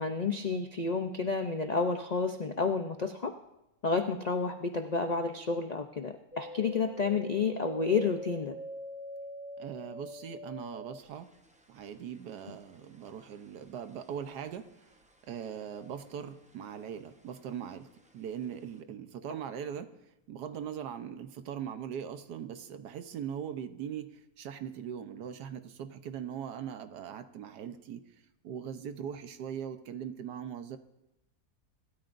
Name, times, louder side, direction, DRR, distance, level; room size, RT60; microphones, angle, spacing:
voice 1, 0.0-3.3 3.8-8.5, left 4 dB, 70° left, 6 dB, 0.3 m, -30 dB
sound 1, 6.3-15.7 16.0-16.9 17.2-18.1 18.5-18.6, right 1 dB, 10° right, 0.4 m, -46 dB
voice 2, 9.6-11.3 11.7-14.7 15.3-19.9 20.3-28.0 28.4-30.8, right 8 dB, 80° right, 9 dB, 1.5 m, -40 dB
25.0 x 13.0 x 2.6 m, 0.89 s
omnidirectional pair, 1.7 m